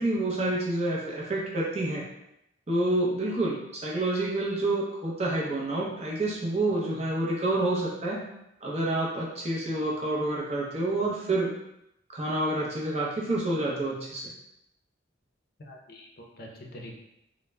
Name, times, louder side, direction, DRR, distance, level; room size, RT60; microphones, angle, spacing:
voice 1, 0.0-2.0 2.7-8.2 8.6-11.5 12.1-14.3, right 2 dB, 35° right, -4 dB, 0.6 m, -28 dB
voice 2, 15.6-17.0, left 1 dB, 55° left, -1 dB, 0.5 m, -45 dB
2.2 x 2.0 x 3.2 m, 0.83 s
head